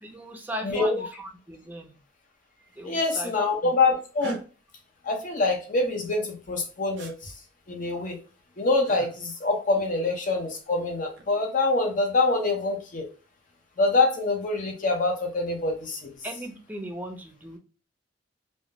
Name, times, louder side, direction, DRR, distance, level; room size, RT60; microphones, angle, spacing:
voice 1, 0.0-2.0 2.7-3.3 3.6-3.7 9.7-9.8 16.2-17.6, right 1 dB, 10° right, 3 dB, 0.4 m, -38 dB
voice 2, 0.6-1.0 2.8-4.4 5.0-7.3 7.7-8.2 8.6-13.1 13.8-16.1, left 3 dB, 45° left, 2 dB, 0.6 m, -25 dB
sound 1, 4.2-4.4 7.0-7.1 8.8-9.1 10.9-11.3, right 1 dB, 90° right, 0.5 m, -38 dB
2.2 x 2.0 x 2.7 m, 0.35 s
head